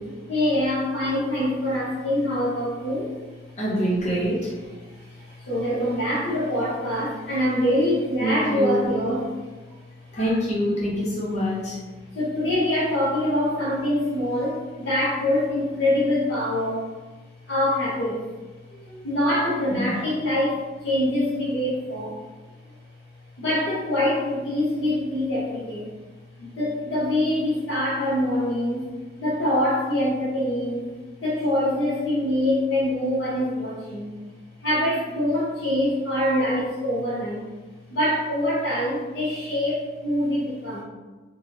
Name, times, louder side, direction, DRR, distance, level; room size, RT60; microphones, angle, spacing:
voice 1, 0.3-3.2 4.9-9.2 12.1-16.9 17.5-18.2 19.0-22.2 23.4-25.9 26.4-28.9 29.2-30.9 31.2-34.2 34.6-37.5 37.9-40.8, left 1 dB, 80° left, -7 dB, 0.7 m, -24 dB
voice 2, 3.6-4.5 8.2-8.9 10.1-11.8 18.7-19.0 19.7-20.0, equal, 40° left, -6 dB, 0.7 m, -25 dB
2.9 x 2.3 x 2.8 m, 1.3 s
head